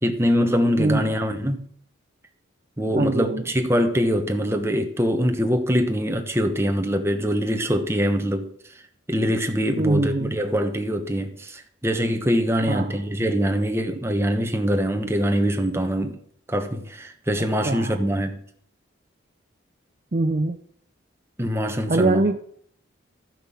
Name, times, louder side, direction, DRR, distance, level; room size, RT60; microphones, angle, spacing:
voice 1, 0.0-1.6 2.8-8.5 9.1-16.2 16.5-18.4 21.4-22.3, equal, 10° right, 1.1 m, -23 dB
voice 2, 0.8-1.1 3.0-3.4 9.8-10.3 12.7-12.9 17.6-18.0 20.1-20.6 21.9-22.4, right 2 dB, 40° right, 0.6 m, -23 dB
12.5 x 6.0 x 7.1 m
head